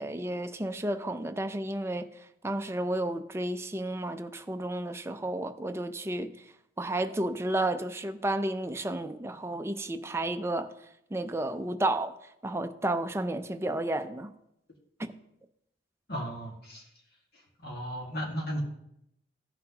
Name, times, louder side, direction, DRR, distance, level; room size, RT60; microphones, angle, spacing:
voice 1, 0.0-6.5 6.8-10.7 11.1-12.2 12.4-14.3 15.0-15.1, right 1 dB, 15° right, 0.4 m, -32 dB
voice 2, 16.1-16.9 17.3-18.6, equal, 60° left, 1.8 m, -36 dB
14.5 x 6.0 x 2.9 m
head